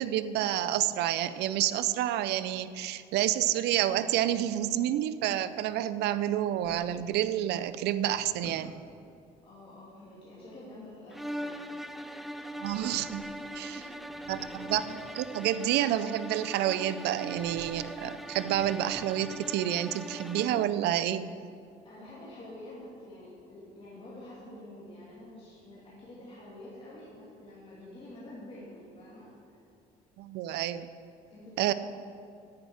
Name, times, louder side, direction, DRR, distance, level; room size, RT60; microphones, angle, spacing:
voice 1, 0.0-8.7 12.6-13.2 13.5-13.8 14.3-21.3 30.2-30.9 31.6-31.7, right 12 dB, 80° right, 13 dB, 0.5 m, -29 dB
Drawer open or close, 6.3-7.2 7.7-8.7 12.4-13.5 13.9-15.0 17.2-17.9 18.2-19.5, left 1 dB, 15° left, 1.8 m, -53 dB
voice 2, 9.4-11.7 13.5-14.5 21.8-29.6 31.3-31.7, left 1 dB, 30° left, -8 dB, 2.7 m, -48 dB
sound 1, 11.1-20.8, equal, ahead, 0.4 m, -41 dB
10.5 x 9.3 x 4.9 m, 2.5 s
cardioid pair, 110°, 17 cm